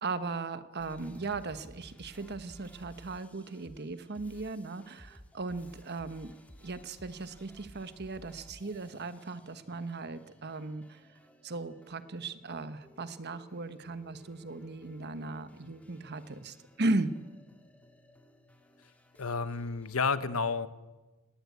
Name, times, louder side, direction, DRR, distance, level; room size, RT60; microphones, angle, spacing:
voice 1, 0.0-6.3 6.6-11.1 11.4-17.1, right 3 dB, 50° right, 12 dB, 1.1 m, -37 dB
sound 1, 0.8-20.1, left 1 dB, 5° left, 1.7 m, -57 dB
voice 2, 19.2-20.7, left 4 dB, 75° left, 13 dB, 1.1 m, -30 dB
19.0 x 18.0 x 8.3 m, 1.2 s
head